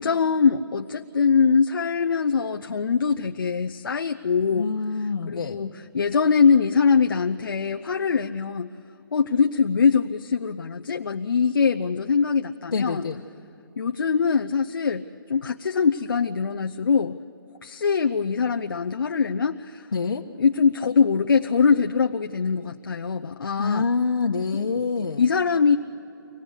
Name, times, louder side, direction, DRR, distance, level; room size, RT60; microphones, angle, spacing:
voice 1, 0.0-4.7 5.3-8.7 9.1-13.1 13.8-17.2 17.6-19.9 20.4-23.9 25.0-25.8, left 5 dB, 65° left, 5 dB, 0.7 m, -22 dB
voice 2, 4.5-5.6 12.7-13.2 19.9-20.2 23.6-25.3, left 4 dB, 90° left, 0 dB, 1.2 m, -26 dB
25.0 x 18.5 x 8.1 m, 3.0 s
hypercardioid pair, 175°, 12 cm